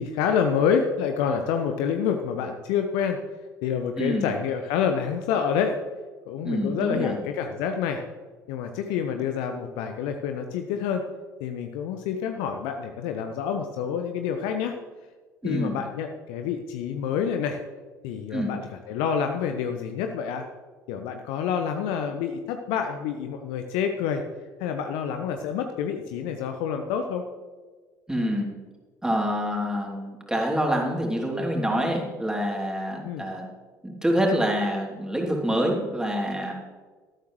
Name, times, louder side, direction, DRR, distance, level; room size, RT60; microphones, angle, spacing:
voice 1, 0.0-3.2 3.6-5.8 6.3-8.0 8.5-11.0 11.4-14.8 15.4-17.6 18.0-20.5 20.9-24.2 24.6-27.3 33.0-33.3, left 7 dB, 60° left, 6 dB, 0.8 m, -27 dB
voice 2, 6.4-7.2 15.4-15.7 18.3-18.5 28.1-28.5 29.0-33.4 33.8-36.5, equal, 5° right, -1 dB, 3.1 m, -26 dB
13.5 x 13.0 x 3.2 m, 1.4 s
figure-of-eight pair, 55°, 9 cm